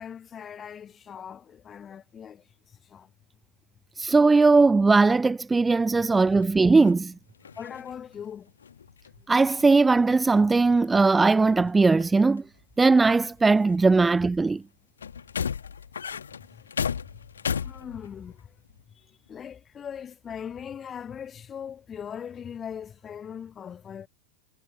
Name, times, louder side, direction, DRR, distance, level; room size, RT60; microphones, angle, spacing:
voice 1, 0.0-2.4 2.9-3.1 7.6-8.5 16.5-16.6 17.5-18.5 19.3-24.1, left 8 dB, 25° left, 0.8 m, -40 dB
voice 2, 4.0-7.1 9.3-12.4 12.8-14.6, right 3 dB, 10° right, 0.4 m, -19 dB
sound 1, 6.0-9.2 9.6-10.4 10.7-11.3 11.8-12.4 12.9-13.0 13.6-14.3 15.0-18.3 18.7-18.8, left 7 dB, 70° left, 1.6 m, -36 dB
figure-of-eight pair, 90°, 0 cm